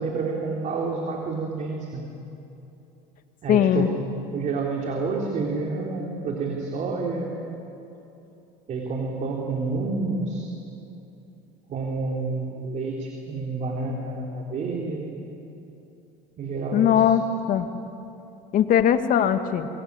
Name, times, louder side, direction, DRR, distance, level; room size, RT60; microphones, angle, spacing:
voice 1, 0.0-2.1 3.4-3.9 4.3-7.4 8.7-10.5 11.7-15.1 16.4-17.1, right 3 dB, 45° right, 0 dB, 3.8 m, -29 dB
voice 2, 3.5-3.9 16.7-17.2 17.5-17.7 18.5-19.7, left 10 dB, 55° left, 8 dB, 2.0 m, -19 dB
25.5 x 23.0 x 9.7 m, 2.9 s
supercardioid pair, 100°, 17 cm